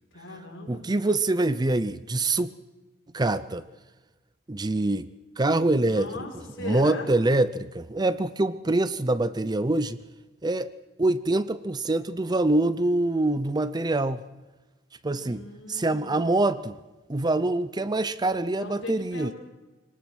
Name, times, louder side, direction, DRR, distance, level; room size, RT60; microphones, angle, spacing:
voice 1, 0.1-0.9 5.6-7.1 15.1-16.5 18.6-19.3, left 2 dB, 80° left, 1 dB, 4.9 m, -40 dB
voice 2, 0.7-2.5 3.1-3.7 4.5-5.1 5.4-6.3 6.6-10.0 10.4-10.7 11.0-14.2 15.0-16.8 17.1-19.3, right 2 dB, 20° right, 14 dB, 0.5 m, -25 dB
23.0 x 19.0 x 6.2 m, 1.2 s
head